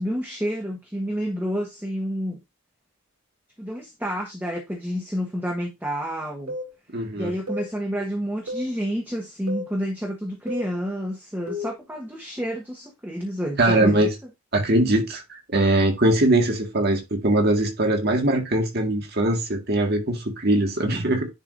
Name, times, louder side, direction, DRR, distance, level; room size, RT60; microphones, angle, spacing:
voice 1, 0.0-2.4 3.6-6.6 7.2-14.1, equal, 10° right, 1.2 m, -29 dB
sound 1, 6.5-6.7 7.5-7.7 8.5-8.7 9.5-9.7 10.5-10.7 11.5-11.8, left 1 dB, 90° right, 2.6 m, -32 dB
voice 2, 6.9-7.3 13.6-14.1 14.5-21.3, right 1 dB, 45° right, 1.8 m, -21 dB
10.0 x 4.7 x 2.6 m
head